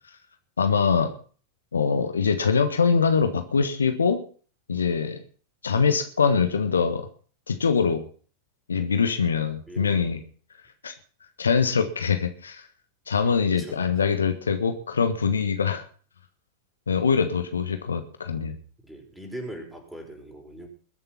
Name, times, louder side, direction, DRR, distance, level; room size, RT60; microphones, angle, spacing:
voice 1, 0.6-1.1 1.7-4.2 4.7-5.2 5.6-7.1 7.5-8.0 8.7-10.2 10.8-10.9 11.4-12.7 13.1-15.8 16.9-18.6, left 5 dB, 70° left, 8 dB, 1.5 m, -23 dB
voice 2, 9.7-10.1 13.2-13.8 18.8-20.7, right 1 dB, 5° right, 2 dB, 5.4 m, -40 dB
21.5 x 7.5 x 5.9 m, 0.42 s
figure-of-eight pair, 90°, 0 cm